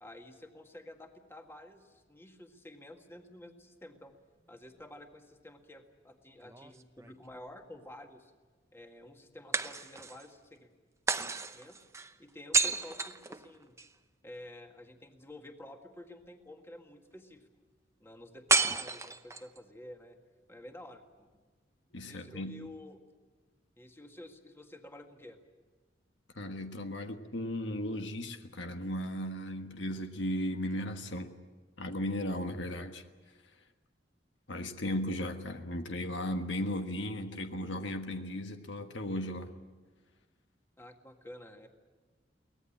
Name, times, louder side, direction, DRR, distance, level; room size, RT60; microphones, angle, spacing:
voice 1, 0.0-4.1 4.5-8.3 8.7-10.7 11.5-11.8 12.2-13.8 14.2-17.5 18.0-20.2 20.5-21.3 22.1-23.0 23.8-25.4 40.8-41.7, left 1 dB, 15° left, 4 dB, 1.8 m, -50 dB
sound 1, 6.4-7.5 9.5-10.3 11.1-13.9 18.5-19.6, right 4 dB, 15° right, 0.8 m, -31 dB
voice 2, 21.9-22.6 26.3-31.3 31.8-33.0 34.5-39.5, left 1 dB, 75° left, 6 dB, 1.5 m, -36 dB
23.5 x 18.5 x 8.7 m, 1.3 s
head